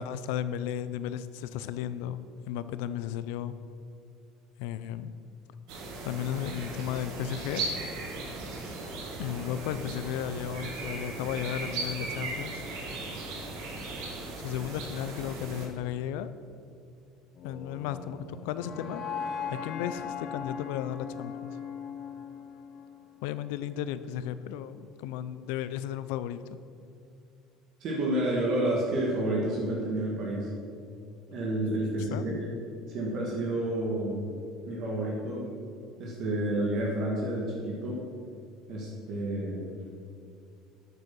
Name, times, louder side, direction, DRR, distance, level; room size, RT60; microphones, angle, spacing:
voice 1, 0.0-2.2 2.5-3.5 4.6-5.1 6.0-7.7 9.2-12.6 14.4-16.3 17.4-19.0 19.5-21.5 23.2-26.6 32.1-32.2, left 10 dB, 85° left, 13 dB, 0.5 m, -34 dB
sound 1, 5.7-15.7, right 2 dB, 70° right, 1.8 m, -37 dB
sound 2, 17.4-23.5, left 6 dB, 45° left, 0.9 m, -39 dB
voice 2, 27.8-30.5 31.3-32.5 32.9-34.3 34.7-35.5 36.0-38.0 38.7-39.8, right 1 dB, 45° right, -3 dB, 2.0 m, -30 dB
9.1 x 8.2 x 6.1 m, 2.4 s
cardioid pair, 150°, 0 cm